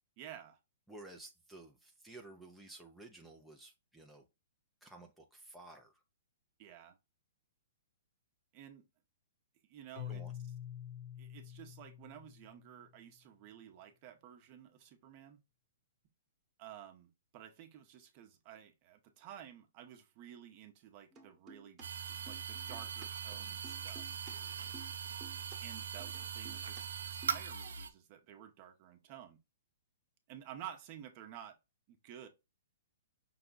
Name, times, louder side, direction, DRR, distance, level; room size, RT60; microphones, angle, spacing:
voice 1, 0.2-0.6 6.6-7.0 8.5-8.8 9.6-10.2 11.2-15.4 16.6-21.8 22.3-24.8 25.6-29.4 30.3-31.6 31.9-32.3, right 10 dB, 35° right, 0.9 m, -52 dB
voice 2, 0.9-4.3 4.8-5.9 10.1-10.3, right 2 dB, ahead, 0.6 m, -53 dB
Keyboard (musical), 10.0-12.9, left 10 dB, 50° left, 0.5 m, -47 dB
sound 1, 21.1-21.8 22.1-24.3 24.6-25.6 26.0-26.8 27.1-27.5, right 3 dB, 20° right, 1.2 m, -55 dB
sound 2, 21.8-27.9, right 7 dB, 90° right, 0.7 m, -41 dB
5.8 x 2.3 x 3.8 m
hypercardioid pair, 155°, 0 cm